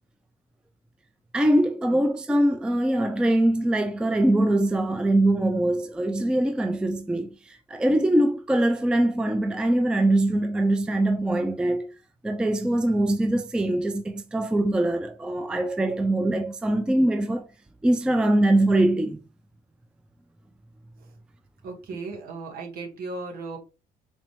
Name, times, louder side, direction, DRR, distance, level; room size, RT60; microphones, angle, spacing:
voice 1, 1.3-11.9 12.2-17.5 17.8-19.2, right 1 dB, 5° right, 0.3 m, -23 dB
voice 2, 21.6-23.6, right 3 dB, 60° right, 1.5 m, -36 dB
4.0 x 3.0 x 3.0 m
cardioid pair, 110°, 17 cm